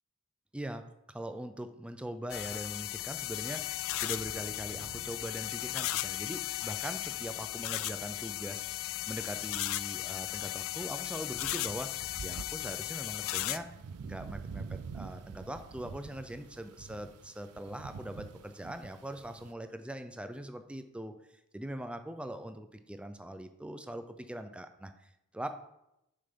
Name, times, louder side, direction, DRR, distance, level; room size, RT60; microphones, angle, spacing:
voice 1, 0.5-13.7 14.0-21.1 21.5-25.5, right 1 dB, 5° right, 9 dB, 0.5 m, -42 dB
sound 1, 2.3-13.6, left 14 dB, 65° left, 0.4 m, -36 dB
sound 2, 4.0-19.5, right 5 dB, 75° right, 0.5 m, -49 dB
6.9 x 5.7 x 5.3 m, 0.85 s
head